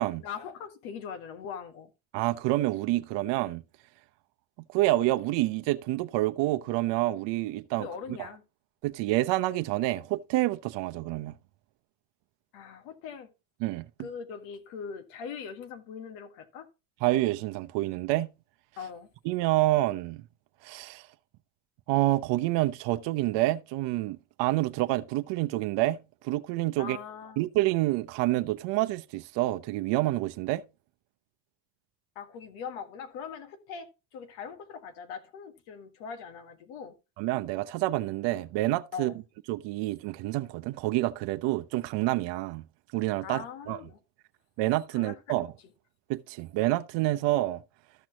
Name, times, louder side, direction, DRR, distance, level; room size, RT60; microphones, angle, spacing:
voice 1, 0.2-1.9 7.8-8.4 12.5-13.3 14.0-16.7 18.8-19.1 26.8-27.4 32.2-36.9 38.9-39.2 43.2-44.0 44.9-45.4, left 6 dB, 75° left, 1.8 m, -41 dB
voice 2, 2.1-3.6 4.7-7.9 8.2-8.3 8.8-11.4 13.6-14.1 17.0-18.3 19.2-20.2 20.6-21.1 21.9-27.0 27.4-30.6 37.2-39.1 39.5-42.6 42.9-43.8 44.6-45.5 46.1-47.6, right 17 dB, 60° right, 0.8 m, -28 dB
13.5 x 6.0 x 2.9 m
supercardioid pair, 115°, 49 cm